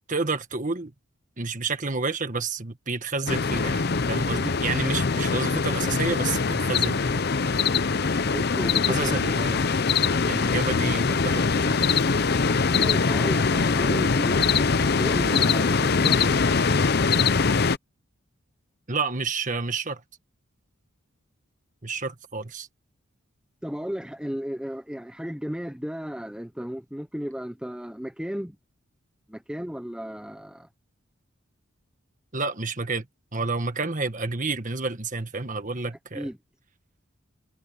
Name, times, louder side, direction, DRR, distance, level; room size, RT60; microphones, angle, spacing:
voice 1, 0.1-0.9 1.4-7.2 8.9-9.6 10.3-12.0 18.9-20.0 21.8-22.7 32.3-33.0 33.3-36.3, right 4 dB, 40° right, 1.6 m, -30 dB
sound 1, 3.3-17.8, left 4 dB, 50° left, 0.7 m, -23 dB
voice 2, 8.2-9.2 12.8-16.3 23.6-28.6 29.3-30.7 36.1-36.4, equal, 5° right, 0.8 m, -34 dB
head